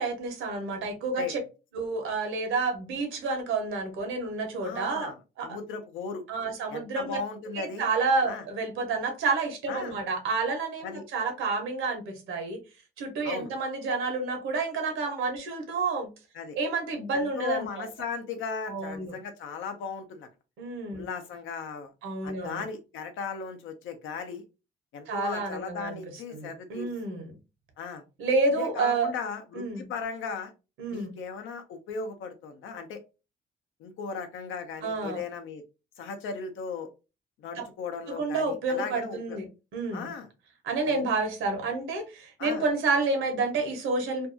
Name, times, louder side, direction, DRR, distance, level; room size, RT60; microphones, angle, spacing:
voice 1, 0.0-1.4 1.7-5.1 5.4-5.5 6.3-7.2 7.5-12.6 13.0-16.1 16.6-17.9 18.7-19.1 20.6-21.1 22.0-22.6 25.1-26.0 26.3-27.3 28.2-29.1 29.5-29.8 30.8-31.1 34.8-35.2 37.6-37.7 38.1-39.4 39.7-40.1 40.6-44.3, right 3 dB, 85° right, 5 dB, 0.9 m, -29 dB
voice 2, 4.6-6.3 6.7-7.8 8.2-8.4 9.7-10.0 10.8-11.0 13.2-13.5 16.3-16.6 17.1-20.3 20.9-21.9 22.2-24.4 24.9-26.9 27.8-28.0 28.6-30.5 30.9-33.0 33.8-35.6 36.0-36.9 37.4-39.4 39.9-40.3 42.4-42.6, left 5 dB, 85° left, 7 dB, 0.6 m, -37 dB
2.6 x 2.3 x 2.5 m, 0.29 s
cardioid pair, 90°, 20 cm